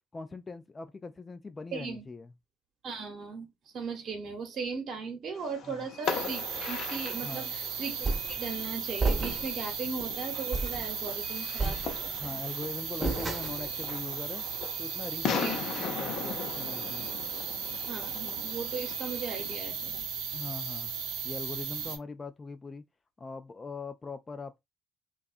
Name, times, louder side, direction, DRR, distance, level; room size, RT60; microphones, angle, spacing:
voice 1, 0.1-2.3 5.7-5.9 7.2-7.6 12.1-14.4 14.8-17.1 20.3-20.9 21.2-22.8 23.2-24.6, left 3 dB, 25° left, 0.3 m, -41 dB
voice 2, 1.7-2.0 2.8-12.4 15.3-15.6 17.9-20.0, right 4 dB, 55° right, 0.9 m, -38 dB
Fireworks, 5.3-19.6, left 6 dB, 60° left, 0.6 m, -39 dB
sound 1, 6.0-22.0, right 7 dB, 75° right, 0.6 m, -36 dB
sound 2, 8.0-8.4 9.0-9.6 10.0-10.1 10.5-10.9 11.6-12.3 13.0-13.7, right 3 dB, 25° right, 0.8 m, -31 dB
2.6 x 2.3 x 2.4 m
hypercardioid pair, 65°, 0 cm